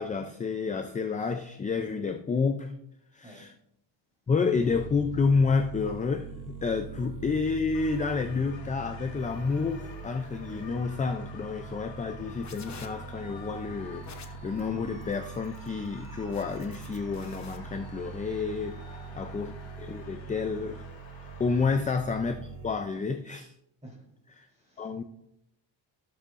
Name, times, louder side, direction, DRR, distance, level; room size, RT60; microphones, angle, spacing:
voice 1, 0.0-2.7 3.1-3.5 4.3-18.8 19.2-19.5 19.8-20.8 21.4-23.5 24.4-24.5 24.8-25.0, left 4 dB, 20° left, 6 dB, 0.3 m, -29 dB
Arpic slow, 4.5-22.7, right 4 dB, 45° right, 1.1 m, -43 dB
sound 1, 7.7-21.7, left 5 dB, 75° left, 1.7 m, -51 dB
sound 2, 12.0-17.6, left 5 dB, 40° left, 0.9 m, -50 dB
voice 2, 18.7-19.5 20.2-20.4 23.8-24.2 24.5-25.0, equal, 15° right, -3 dB, 3.5 m, -53 dB
14.5 x 6.9 x 2.5 m, 0.76 s
cardioid pair, 155°, 45 cm